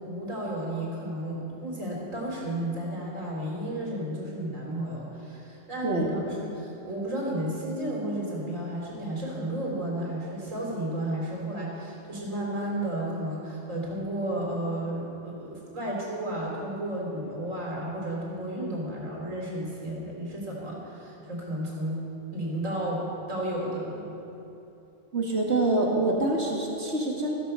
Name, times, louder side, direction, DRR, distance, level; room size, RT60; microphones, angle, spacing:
voice 1, 0.0-22.0 22.3-23.0 23.3-24.1, right 1 dB, 75° right, -3 dB, 3.7 m, -33 dB
voice 2, 25.1-27.3, right 2 dB, 55° right, -2 dB, 2.1 m, -26 dB
15.0 x 14.5 x 5.6 m, 2.9 s
omnidirectional pair, 1.3 m